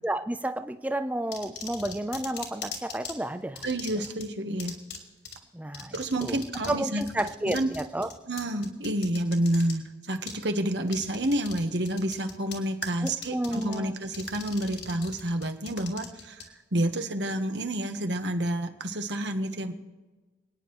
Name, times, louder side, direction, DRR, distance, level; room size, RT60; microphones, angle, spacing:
voice 1, 0.0-3.7 5.5-5.9 6.2-6.4 6.7-8.1 13.0-13.9, right 1 dB, 10° right, 9 dB, 0.6 m, -31 dB
sound 1, 1.3-3.1 3.6-4.2 4.6-5.0 5.3-5.4 5.7-6.8 7.0-9.7 10.3-10.4 10.9-11.6 11.9-12.6 12.8-13.8 14.1-16.4, left 7 dB, 65° left, 2.8 m, -39 dB
voice 2, 3.6-4.8 5.9-7.0 7.5-7.7 8.3-19.7, right 1 dB, 75° right, 6 dB, 1.3 m, -29 dB
28.5 x 9.7 x 3.2 m, 1.3 s
head